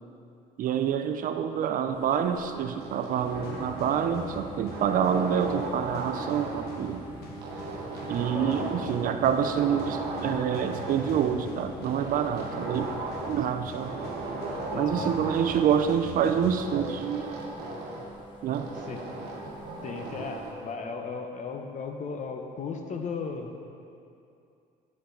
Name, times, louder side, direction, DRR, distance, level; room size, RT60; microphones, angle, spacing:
voice 1, 0.6-7.0 8.1-12.9 13.3-13.9 14.7-17.3 18.4-18.7, right 8 dB, 55° right, 8 dB, 0.4 m, -27 dB
sound 1, 1.9-20.5, right 2 dB, 30° left, 1.1 m, -46 dB
sound 2, 2.8-4.3 4.7-6.8 7.4-9.1 9.4-11.4 11.8-13.4 13.8-15.8 16.6-18.1 18.5-20.6, right 3 dB, 80° right, 1.0 m, -37 dB
sound 3, 3.2-17.3, left 2 dB, 70° left, 1.0 m, -44 dB
voice 2, 8.3-8.7 14.7-15.2 18.7-19.1 19.8-23.5, left 5 dB, 45° left, 4 dB, 0.7 m, -36 dB
8.2 x 5.6 x 3.8 m, 2.6 s
cardioid pair, 110°, 17 cm